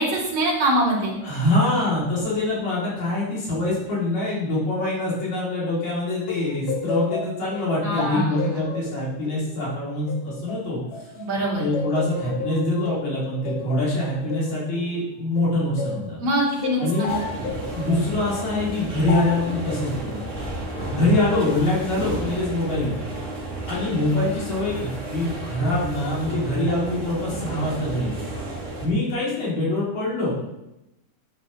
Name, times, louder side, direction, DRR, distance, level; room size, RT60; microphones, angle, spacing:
voice 1, 0.0-1.1 7.8-8.6 11.2-11.6 16.2-17.2, right 1 dB, 45° right, -7 dB, 4.1 m, -24 dB
voice 2, 1.2-11.1 11.6-16.2 16.8-17.2 17.7-20.2 20.9-23.1 23.7-28.2 28.8-30.4, left 1 dB, 60° left, -7 dB, 4.3 m, -24 dB
sound 1, 6.3-11.3 11.7-16.1 16.6-18.1 19.1-19.5, left 5 dB, 80° left, 2.5 m, -32 dB
sound 2, 17.1-28.9, right 2 dB, 25° right, 2.0 m, -32 dB
9.7 x 9.4 x 3.2 m, 0.92 s
omnidirectional pair, 3.7 m